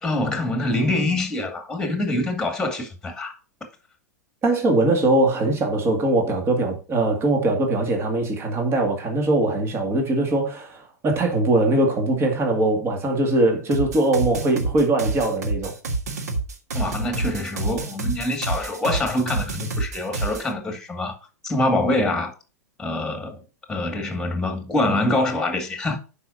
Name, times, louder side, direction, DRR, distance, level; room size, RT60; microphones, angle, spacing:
voice 1, 0.0-3.4 16.7-21.2 21.4-22.3 22.8-23.4 23.7-26.0, left 2 dB, 5° left, 2.2 m, -25 dB
voice 2, 4.4-15.7, right 2 dB, 30° right, 2.1 m, -21 dB
sound 1, 13.7-20.5, right 3 dB, 80° right, 1.7 m, -28 dB
11.5 x 5.2 x 2.7 m
hypercardioid pair, 100°, 9 cm